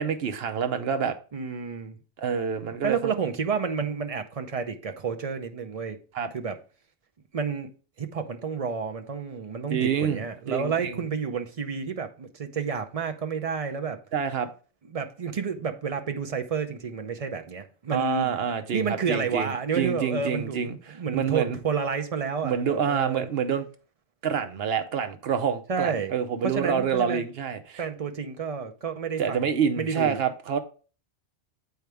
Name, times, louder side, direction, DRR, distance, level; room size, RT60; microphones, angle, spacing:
voice 1, 0.0-1.2 2.2-3.1 6.1-6.3 9.7-11.0 14.1-14.5 17.9-21.6 22.4-23.7 24.2-27.8 29.2-30.6, right 7 dB, 65° right, 0.9 m, -27 dB
voice 2, 1.3-2.0 2.8-6.0 6.3-6.6 7.3-7.7 8.0-14.0 14.9-18.3 18.7-20.6 20.9-23.3 25.7-26.1 26.4-27.2 27.8-29.5 29.8-30.2, right 6 dB, 40° right, 0.6 m, -30 dB
7.9 x 4.6 x 3.4 m
omnidirectional pair, 1.1 m